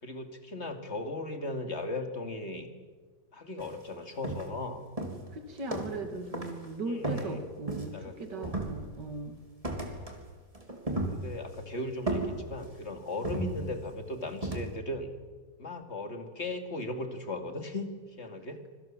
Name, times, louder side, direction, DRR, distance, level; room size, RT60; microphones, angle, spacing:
voice 1, 0.0-2.7 3.3-4.9 6.9-7.4 7.9-8.6 9.9-10.1 11.1-15.1 15.6-18.6, left 2 dB, 40° left, 6 dB, 2.6 m, -37 dB
sound 1, 3.6-3.8 4.2-4.6 5.0-6.1 6.3-6.6 7.0-8.1 8.4-9.1 9.6-10.2 10.5-11.6 12.1-12.8 13.2-14.0 14.4-14.8, right 2 dB, 20° right, 3.4 m, -35 dB
voice 2, 5.3-9.4, right 2 dB, 80° right, 6 dB, 3.1 m, -38 dB
26.0 x 24.0 x 7.6 m, 1.4 s
omnidirectional pair, 1.8 m